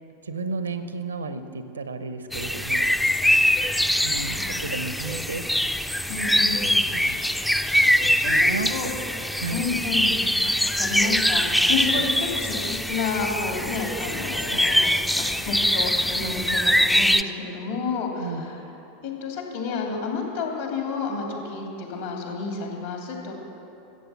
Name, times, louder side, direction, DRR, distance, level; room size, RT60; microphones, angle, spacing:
voice 1, 0.3-2.9 4.0-5.4 6.9-7.2 8.0-8.9 9.4-9.6 14.5-14.7 18.2-18.4, right 3 dB, 80° right, 10 dB, 0.8 m, -33 dB
sound 1, 2.3-17.2, equal, 5° left, 0.4 m, -23 dB
voice 2, 4.1-4.7 6.1-6.8 7.5-7.6 8.1-8.9 9.5-18.6 19.0-23.3, left 4 dB, 65° left, 0 dB, 2.8 m, -31 dB
14.0 x 8.1 x 7.1 m, 2.8 s
figure-of-eight pair, 85°, 0 cm